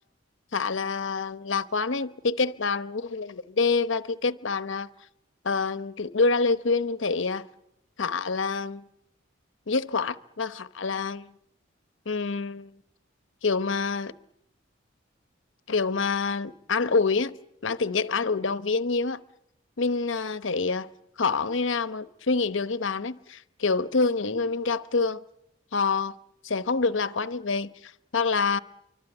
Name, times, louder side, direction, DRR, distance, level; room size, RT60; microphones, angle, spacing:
voice 1, 0.5-4.9 5.4-7.5 8.0-8.8 9.7-11.3 12.1-12.8 13.4-14.1 15.7-17.3 17.6-19.2 19.8-20.9 21.2-25.2 25.7-26.1 26.4-28.6, left 4 dB, 75° left, 0.9 m, -26 dB
25.0 x 24.5 x 8.0 m
head